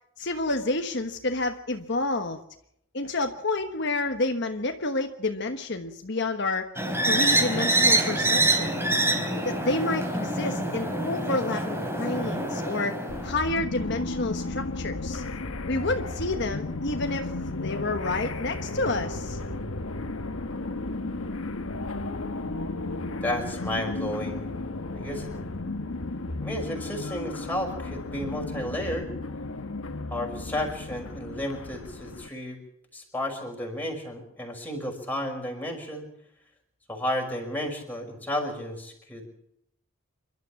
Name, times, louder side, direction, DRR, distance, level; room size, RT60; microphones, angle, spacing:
voice 1, 0.2-2.4 2.9-6.7 7.1-8.7 9.4-15.2 15.7-17.3 17.6-19.4, left 2 dB, 55° left, 5 dB, 1.3 m, -29 dB
sound 1, 6.8-13.5, right 1 dB, 10° right, 3.7 m, -25 dB
sound 2, 13.1-32.3, left 2 dB, 85° left, 1.4 m, -34 dB
voice 2, 23.2-24.6 24.9-25.3 26.4-29.1 30.1-32.6 32.9-36.1 36.9-39.3, left 1 dB, 10° left, 0 dB, 5.6 m, -32 dB
28.5 x 12.5 x 7.4 m, 0.76 s
head